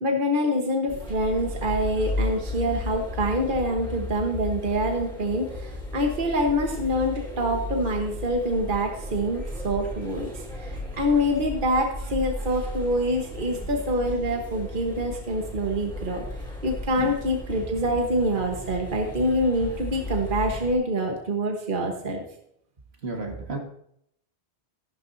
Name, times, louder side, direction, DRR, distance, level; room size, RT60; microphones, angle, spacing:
voice 1, 0.0-10.3 10.6-16.2 16.6-22.2, equal, 50° right, 2 dB, 1.5 m, -26 dB
sound 1, 0.9-20.7, left 2 dB, 5° left, 3.1 m, -35 dB
voice 2, 23.0-23.6, right 3 dB, 70° right, 1 dB, 2.1 m, -32 dB
14.0 x 12.0 x 2.7 m, 0.71 s
omnidirectional pair, 1.1 m